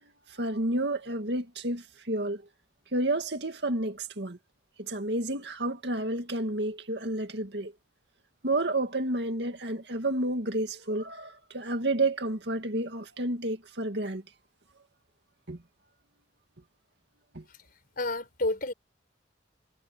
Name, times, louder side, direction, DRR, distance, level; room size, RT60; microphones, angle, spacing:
voice 1, 0.3-2.4 2.9-4.4 4.8-7.7 8.4-14.2 15.5-15.6 17.3-17.4, right 2 dB, 60° right, 2.4 m, -30 dB
voice 2, 18.0-18.7, left 2 dB, 50° left, 4.6 m, -30 dB
head